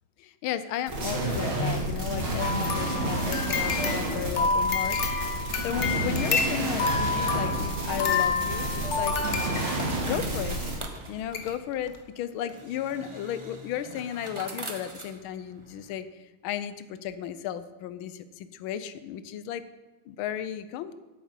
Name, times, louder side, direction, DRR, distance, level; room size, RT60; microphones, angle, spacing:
voice 1, 0.2-9.2 10.0-10.6 11.1-19.6 20.1-20.9, left 10 dB, 80° left, 13 dB, 1.5 m, -34 dB
sound 1, 0.9-10.8, right 2 dB, 75° right, 3.5 m, -30 dB
sound 2, 2.4-10.2 10.8-10.9 11.3-11.5 11.9-12.0, left 4 dB, 45° left, 1.1 m, -29 dB
sound 3, 9.1-15.9, right 2 dB, 40° right, 0.4 m, -44 dB
8.7 x 8.6 x 7.2 m, 1.2 s
omnidirectional pair, 2.3 m